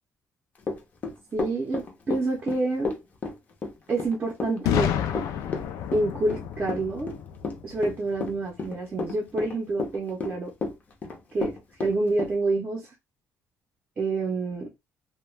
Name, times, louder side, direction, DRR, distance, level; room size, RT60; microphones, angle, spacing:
Run / Walk footsteps, 0.6-12.3, left 4 dB, 30° left, 0.5 m, -32 dB
voice 1, 1.3-3.0 3.9-5.0 5.9-7.1 7.6-10.5 11.3-11.5 11.8-12.9 14.0-14.7, right 2 dB, 25° right, 0.6 m, -27 dB
Boom, 4.6-8.5, left 9 dB, 85° left, 0.4 m, -30 dB
2.2 x 2.1 x 3.1 m
cardioid pair, 170°, 6 cm